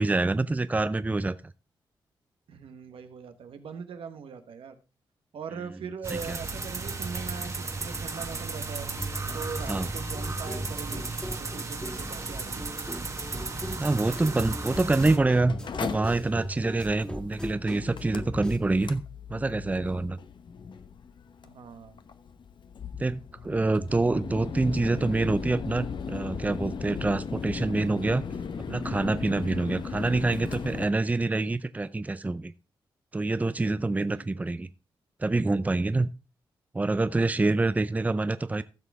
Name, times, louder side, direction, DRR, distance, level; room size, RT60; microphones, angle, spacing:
voice 1, 0.0-1.3 6.3-6.4 9.7-9.9 13.8-19.0 19.3-20.2 23.0-28.2 28.7-32.5 33.1-34.7 35.2-36.1 36.7-38.6, right 2 dB, 15° right, 0.5 m, -26 dB
voice 2, 2.5-4.8 5.3-8.9 9.3-11.1 11.4-12.6 21.4-22.0 34.1-34.5, right 6 dB, 80° right, 1.2 m, -41 dB
sound 1, 6.0-15.2, right 3 dB, 35° right, 1.5 m, -35 dB
sound 2, 9.0-18.6, equal, 10° left, 2.0 m, -38 dB
Mechanical fan, 14.8-30.8, left 6 dB, 60° left, 0.9 m, -38 dB
15.0 x 6.3 x 3.5 m
cardioid pair, 80°, 9 cm